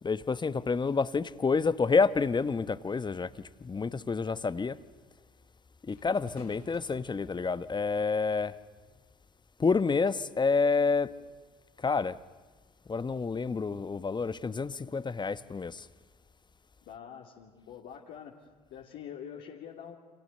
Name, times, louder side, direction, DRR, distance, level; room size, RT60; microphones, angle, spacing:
voice 1, 0.0-3.3 3.6-4.8 5.9-8.5 9.6-11.1 11.8-12.2 12.9-15.8, left 4 dB, 20° left, 1.1 m, -28 dB
sound 1, 5.9-7.8 8.7-8.9, left 3 dB, 90° left, 6.9 m, -54 dB
voice 2, 16.8-18.4 18.7-20.0, left 8 dB, 55° left, 2.8 m, -45 dB
30.0 x 28.0 x 6.6 m
figure-of-eight pair, 60°, 20 cm